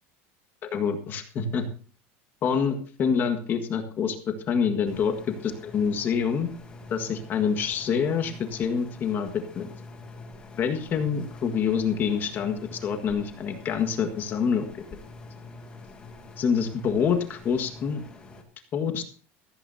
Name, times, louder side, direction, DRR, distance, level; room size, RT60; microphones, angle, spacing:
voice 1, 0.6-1.7 2.4-5.1 5.4-6.5 6.9-9.7 10.6-14.7 16.4-18.0 18.7-19.0, left 6 dB, 30° left, 6 dB, 1.7 m, -26 dB
sound 1, 4.9-18.4, left 3 dB, 15° left, 2.3 m, -45 dB
15.5 x 15.0 x 2.8 m, 0.39 s
cardioid pair, 165°, 7 cm